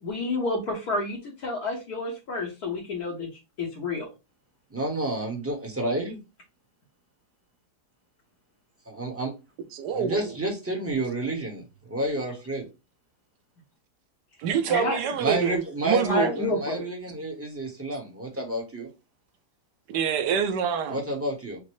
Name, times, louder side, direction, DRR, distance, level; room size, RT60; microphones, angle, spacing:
voice 1, 0.0-3.3 3.6-4.1 14.6-15.0 16.0-16.8, left 2 dB, 65° left, 1.5 m, -29 dB
voice 2, 4.7-6.2 8.9-9.3 9.9-11.6 11.9-12.7 15.2-18.9 20.9-21.6, right 1 dB, 10° right, 0.8 m, -30 dB
voice 3, 9.7-10.3 14.4-16.3 19.9-21.0, right 7 dB, 80° right, 1.3 m, -26 dB
6.4 x 2.2 x 3.1 m
omnidirectional pair, 1.8 m